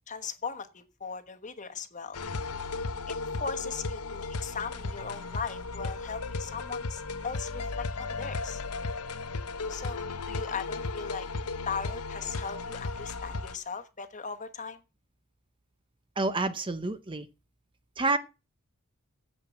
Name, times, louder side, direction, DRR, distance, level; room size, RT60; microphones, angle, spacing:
voice 1, 0.1-2.2 3.1-8.6 9.7-11.3 11.7-14.8, left 6 dB, 35° left, 1.2 m, -38 dB
sound 1, 2.1-13.5, left 3 dB, 85° left, 0.9 m, -35 dB
voice 2, 16.2-17.3 18.0-18.2, right 3 dB, 20° right, 0.7 m, -28 dB
9.0 x 7.7 x 7.4 m
head